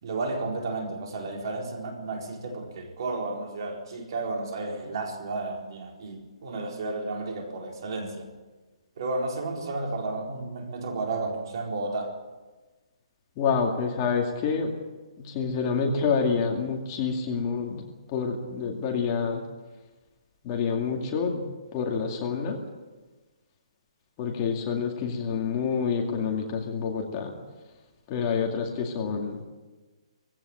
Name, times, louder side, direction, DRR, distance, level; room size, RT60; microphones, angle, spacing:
voice 1, 0.0-8.3 9.0-12.2, right 3 dB, 45° right, 1 dB, 4.3 m, -32 dB
voice 2, 13.4-14.7 15.2-17.9 18.1-19.4 20.4-21.4 21.7-22.6 24.2-27.4 28.1-29.4, left 5 dB, 25° left, 1 dB, 2.3 m, -27 dB
20.0 x 16.5 x 8.9 m, 1.2 s
hypercardioid pair, 170°, 3 cm